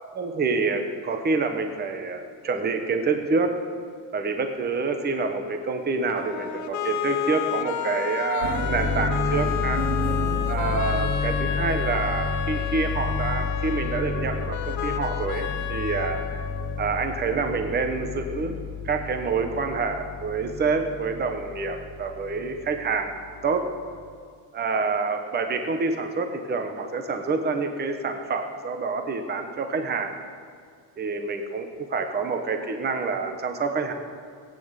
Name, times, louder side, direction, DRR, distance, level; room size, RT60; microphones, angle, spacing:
voice 1, 0.1-3.5 4.1-9.8 10.5-16.2 16.8-23.1 23.4-23.6 24.5-30.2 31.0-33.9, right 4 dB, 20° right, 6 dB, 1.1 m, -27 dB
sound 1, 6.1-17.1, left 9 dB, 40° left, 0.9 m, -31 dB
sound 2, 8.4-23.5, left 3 dB, 75° right, 2.4 m, -30 dB
18.5 x 9.2 x 8.2 m, 2.1 s
cardioid pair, 175°, 45 cm